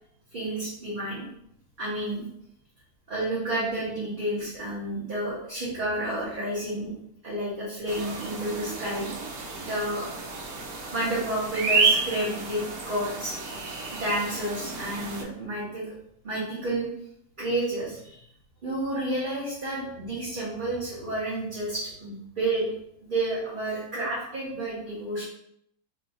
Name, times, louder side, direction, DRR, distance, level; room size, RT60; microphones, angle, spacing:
voice 1, 0.3-1.2 1.8-2.2 3.1-6.9 7.2-9.1 9.6-10.0 10.4-10.5 10.9-12.6 12.8-13.3 13.9-15.8 16.2-16.9 17.4-18.2 18.6-22.6 23.0-25.2, right 1 dB, 40° right, -8 dB, 0.9 m, -30 dB
sound 1, 7.9-15.2, right 4 dB, 75° right, 1.0 m, -30 dB
3.0 x 2.8 x 2.6 m, 0.71 s
omnidirectional pair, 1.6 m